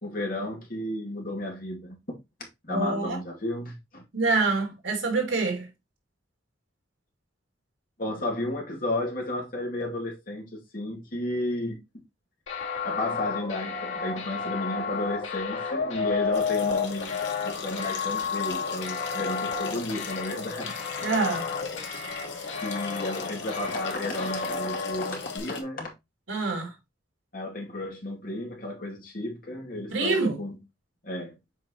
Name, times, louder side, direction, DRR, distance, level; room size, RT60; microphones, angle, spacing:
voice 1, 0.0-2.2 2.6-4.0 8.0-12.0 12.8-20.8 22.6-25.9 27.3-30.6 31.0-31.3, left 1 dB, 45° left, 2.4 m, -33 dB
voice 2, 2.7-3.2 4.1-5.7 21.0-21.5 26.3-26.7 29.9-30.4, right 3 dB, 85° right, 2.5 m, -26 dB
sound 1, 12.5-25.4, left 5 dB, 85° left, 2.7 m, -32 dB
sound 2, 16.3-25.6, left 5 dB, 65° left, 1.6 m, -40 dB
7.5 x 4.8 x 2.9 m
head